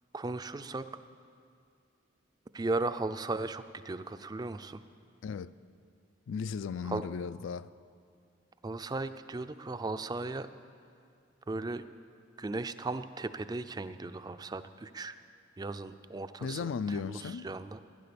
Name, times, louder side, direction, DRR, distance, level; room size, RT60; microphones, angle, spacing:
voice 1, 0.1-0.9 2.5-4.8 6.8-7.0 8.6-10.5 11.5-11.8 12.4-15.2 15.6-17.8, right 2 dB, 20° right, 0.4 m, -36 dB
voice 2, 6.3-7.7 16.4-17.5, left 5 dB, 70° left, 0.4 m, -36 dB
16.0 x 10.5 x 6.9 m
head